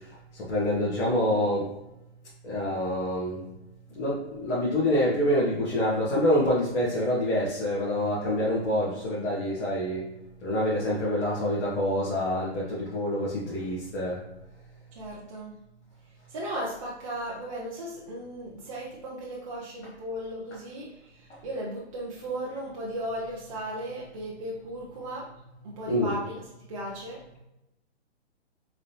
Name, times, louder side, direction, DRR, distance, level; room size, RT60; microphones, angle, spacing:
voice 1, 0.3-1.7 2.4-3.4 3.9-10.0 10.4-14.2 25.9-26.2, left 1 dB, 75° left, -7 dB, 1.5 m, -26 dB
voice 2, 14.9-15.6 16.0-25.3 25.6-27.3, right 1 dB, 30° right, -5 dB, 0.5 m, -36 dB
3.9 x 3.2 x 2.8 m, 0.92 s
hypercardioid pair, 155°, 34 cm